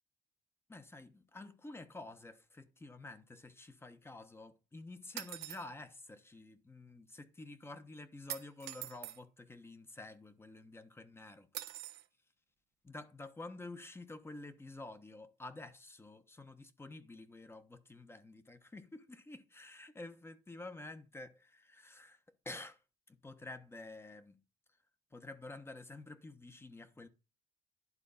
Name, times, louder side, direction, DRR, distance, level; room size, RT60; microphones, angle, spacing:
voice 1, 0.7-11.7 12.8-22.8 23.1-24.4 25.1-27.1, left 2 dB, 15° left, 1.0 m, -50 dB
sound 1, 5.2-5.7 8.3-9.2 11.5-12.0, right 15 dB, 85° right, 0.8 m, -44 dB
11.0 x 3.8 x 5.5 m
cardioid pair, 110°, 17 cm